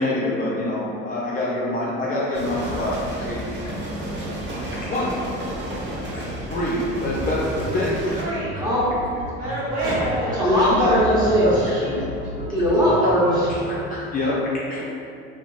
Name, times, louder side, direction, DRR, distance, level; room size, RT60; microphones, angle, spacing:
voice 1, 0.0-3.7 4.8-5.2 6.1-8.2 11.4-11.5 12.6-12.7 13.6-14.8, left 1 dB, 25° left, -7 dB, 0.4 m, -26 dB
sound 1, 2.3-8.2, right 1 dB, 30° right, 0.7 m, -32 dB
voice 2, 2.3-2.9 4.4-5.0 5.5-6.0 8.2-8.6 9.4-10.7 11.5-12.1, right 1 dB, 50° right, -8 dB, 1.1 m, -30 dB
sound 2, 7.0-13.8, equal, 85° right, 1.5 m, -34 dB
voice 3, 8.6-8.9 10.2-11.6 12.5-13.5 14.7-14.8, equal, 10° right, -9 dB, 1.0 m, -19 dB
2.8 x 2.8 x 2.5 m, 2.5 s
figure-of-eight pair, 65°, 37 cm